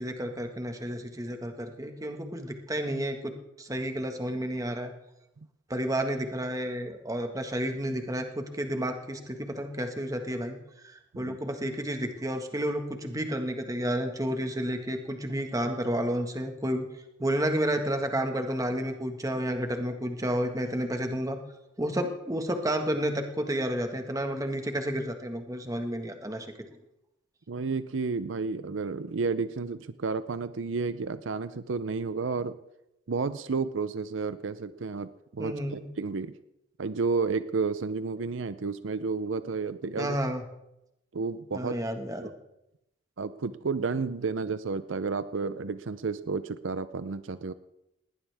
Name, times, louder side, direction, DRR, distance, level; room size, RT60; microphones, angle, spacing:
voice 1, 0.0-4.9 5.7-16.9 17.2-21.4 21.8-26.5 35.4-35.9 40.0-40.4 41.5-42.3, equal, 15° right, 5 dB, 1.6 m, -31 dB
voice 2, 27.5-32.6 33.1-36.3 36.8-40.2 41.1-41.8 42.2-42.3 43.2-47.5, right 4 dB, 75° right, 13 dB, 0.6 m, -31 dB
19.5 x 18.5 x 3.5 m, 0.88 s
head